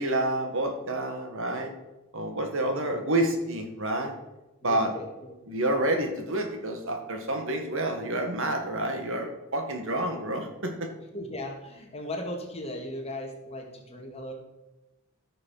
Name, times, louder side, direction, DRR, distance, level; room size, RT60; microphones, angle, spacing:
voice 1, 0.0-1.7 2.1-4.1 4.6-4.9 5.5-10.9, right 1 dB, 60° right, 5 dB, 1.9 m, -29 dB
voice 2, 2.6-3.0 4.6-5.3 11.1-14.3, left 1 dB, 25° left, 2 dB, 2.1 m, -37 dB
14.5 x 6.6 x 5.8 m, 0.99 s
head